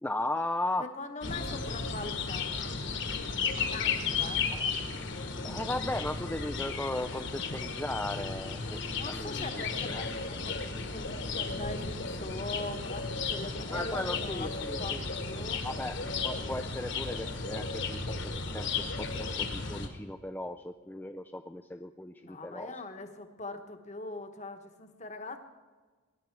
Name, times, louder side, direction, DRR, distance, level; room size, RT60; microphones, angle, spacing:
voice 1, 0.0-0.9 5.4-8.8 9.0-9.3 9.9-10.1 13.7-15.0 15.6-16.0 16.2-18.0 18.5-22.7, left 1 dB, 10° left, 7 dB, 0.3 m, -36 dB
voice 2, 0.8-2.8 3.5-4.5 8.6-14.5 14.8-15.6 22.2-25.4, left 2 dB, 30° left, 7 dB, 1.1 m, -42 dB
sound 1, 1.2-19.9, left 4 dB, 55° left, 1.4 m, -34 dB
22.5 x 10.5 x 4.6 m, 1.4 s
head